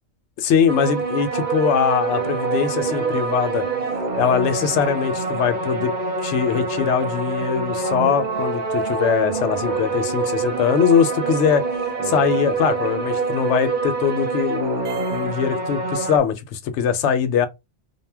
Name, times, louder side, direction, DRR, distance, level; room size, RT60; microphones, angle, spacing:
voice 1, 0.4-3.7 4.2-5.9 6.2-11.6 12.0-17.5, left 7 dB, 80° left, 0.9 m, -21 dB
sound 1, 0.7-16.2, right 4 dB, 45° right, 0.7 m, -26 dB
sound 2, 0.8-15.3, right 5 dB, 80° right, 0.9 m, -35 dB
2.2 x 2.1 x 3.3 m
omnidirectional pair, 1.2 m